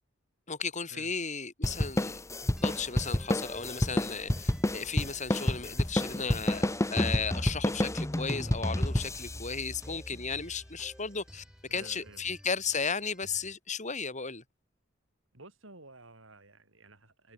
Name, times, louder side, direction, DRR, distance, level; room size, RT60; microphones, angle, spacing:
voice 1, 0.5-2.2 2.6-11.4 11.7-14.4, left 5 dB, 40° left, 5.3 m, -35 dB
sound 1, 1.6-10.5, left 1 dB, 15° left, 1.0 m, -30 dB
sound 2, 2.4-13.5, equal, 5° right, 6.0 m, -54 dB
voice 2, 11.7-12.2 15.3-17.3, right 2 dB, 80° right, 7.6 m, -52 dB
head